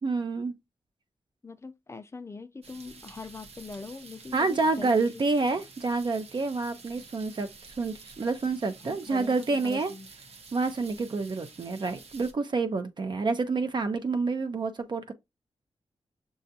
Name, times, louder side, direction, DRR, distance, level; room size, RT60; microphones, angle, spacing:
voice 1, 0.0-0.5 4.3-9.9 10.5-15.1, right 3 dB, 45° right, 0.5 m, -28 dB
voice 2, 1.4-5.2 8.8-10.1, left 3 dB, 25° left, 0.4 m, -42 dB
sound 1, 2.6-12.3, right 4 dB, 75° right, 0.8 m, -50 dB
6.5 x 2.3 x 2.6 m
wide cardioid pair, 125°, 11 cm